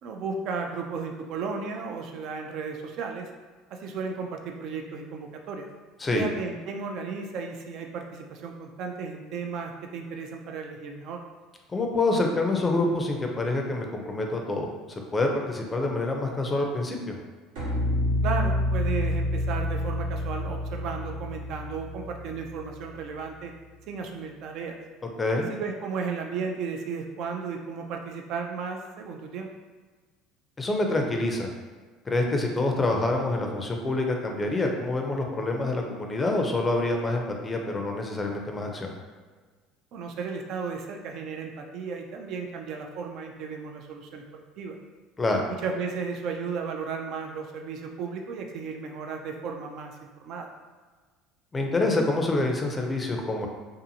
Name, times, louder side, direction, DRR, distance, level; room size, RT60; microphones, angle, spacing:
voice 1, 0.0-3.3 3.7-5.6 6.1-11.2 18.2-23.5 23.9-24.8 25.5-29.5 39.9-44.8 45.5-49.9 50.2-50.5, right 5 dB, 60° right, 3 dB, 0.3 m, -34 dB
voice 2, 11.7-17.2 25.2-25.5 30.6-31.5 32.1-38.9 45.2-45.4 51.5-53.5, left 2 dB, 20° left, 2 dB, 0.4 m, -26 dB
sound 1, 17.6-22.8, left 1 dB, 85° right, 1.0 m, -28 dB
2.6 x 2.4 x 2.7 m, 1.4 s
supercardioid pair, 105°, 0 cm